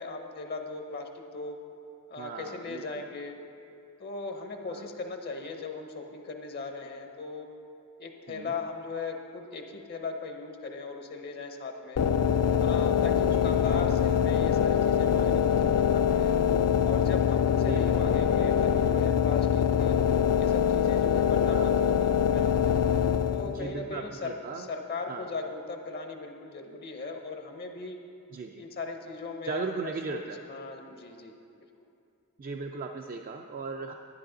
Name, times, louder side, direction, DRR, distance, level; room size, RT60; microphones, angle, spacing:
voice 1, 0.0-1.6 2.1-3.4 4.0-7.5 8.0-12.0 12.6-16.3 16.8-20.0 20.4-22.5 23.3-28.0 28.6-30.2 30.5-31.4, left 4 dB, 45° left, 4 dB, 0.7 m, -38 dB
voice 2, 2.2-3.0 4.7-4.9 8.3-8.5 13.3-13.5 17.6-18.2 21.5-21.7 23.4-24.7 25.1-25.3 28.3-28.6 29.4-30.4 32.4-33.9, right 4 dB, 40° right, 3 dB, 0.4 m, -37 dB
sound 1, 12.0-23.7, left 8 dB, 75° left, 0.4 m, -24 dB
11.0 x 10.0 x 3.8 m, 2.6 s
head